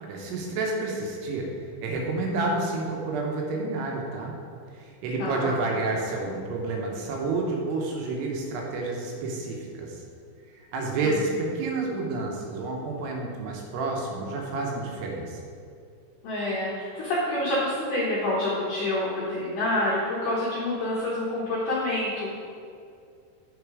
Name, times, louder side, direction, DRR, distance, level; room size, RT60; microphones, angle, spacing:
voice 1, 0.0-1.5 1.8-4.4 4.7-10.0 10.7-15.4, right 3 dB, 75° right, 0 dB, 2.8 m, -29 dB
voice 2, 5.2-5.6 10.9-11.0 16.2-22.3, left 1 dB, 75° left, -7 dB, 1.9 m, -27 dB
8.2 x 4.3 x 4.8 m, 2.3 s
omnidirectional pair, 5.1 m